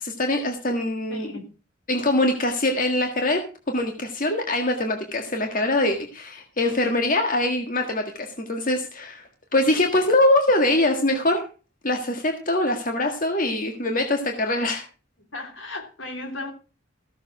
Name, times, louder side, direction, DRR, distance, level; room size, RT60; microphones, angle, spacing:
voice 1, 0.0-1.3 1.9-3.4 3.7-11.4 11.8-14.8, left 1 dB, 45° left, 1.7 m, -23 dB
voice 2, 1.1-1.5 15.2-16.5, left 2 dB, 75° left, 3.0 m, -36 dB
15.0 x 6.8 x 6.1 m
head